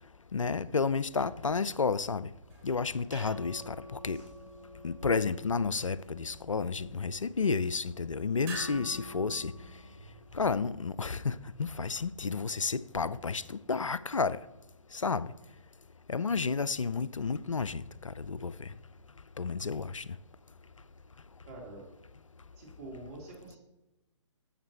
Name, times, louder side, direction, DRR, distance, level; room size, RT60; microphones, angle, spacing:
voice 1, 0.3-2.3 2.6-4.2 4.8-9.5 10.4-14.4 14.9-15.3 16.1-17.8 18.2-18.5 19.4-20.0, left 4 dB, 85° left, 0.4 m, -31 dB
sound 1, 2.4-10.3, right 1 dB, 15° right, 3.0 m, -48 dB
voice 2, 21.5-21.8 22.6-23.6, right 2 dB, 30° right, 3.1 m, -46 dB
12.5 x 7.4 x 2.9 m
figure-of-eight pair, 135°, 16 cm